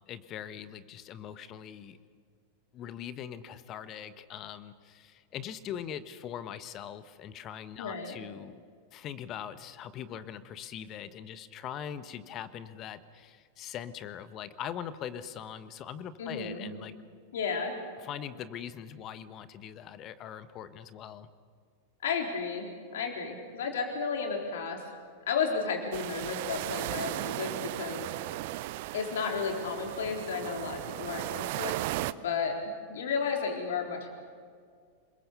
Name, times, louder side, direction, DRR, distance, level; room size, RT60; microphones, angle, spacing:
voice 1, 0.1-2.0 2.7-8.6 8.9-17.0 18.0-21.3, left 9 dB, 35° left, 14 dB, 1.2 m, -41 dB
voice 2, 7.8-8.2 16.2-16.7 17.3-17.8 22.0-24.8 25.3-28.1 28.9-31.8 32.2-34.1, left 5 dB, 60° left, 2 dB, 4.1 m, -33 dB
sound 1, 25.9-32.1, right 17 dB, 50° right, 0.6 m, -36 dB
27.5 x 22.0 x 6.9 m, 2.1 s
figure-of-eight pair, 90°, 0 cm